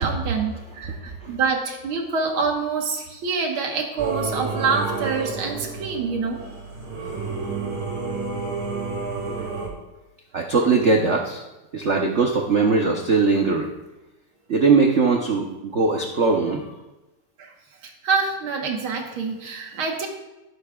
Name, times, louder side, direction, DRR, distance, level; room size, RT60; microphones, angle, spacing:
voice 1, 0.0-6.4 9.4-9.5 17.4-17.5 17.8-20.1, right 4 dB, 80° right, 1 dB, 2.1 m, -26 dB
voice 2, 0.9-1.3 10.3-11.4 11.7-13.7 14.5-16.7, right 4 dB, 55° right, 1 dB, 0.8 m, -20 dB
Singing / Musical instrument, 4.0-9.7, right 4 dB, 30° right, 2.4 m, -30 dB
16.5 x 8.5 x 2.3 m, 1.0 s
omnidirectional pair, 2.3 m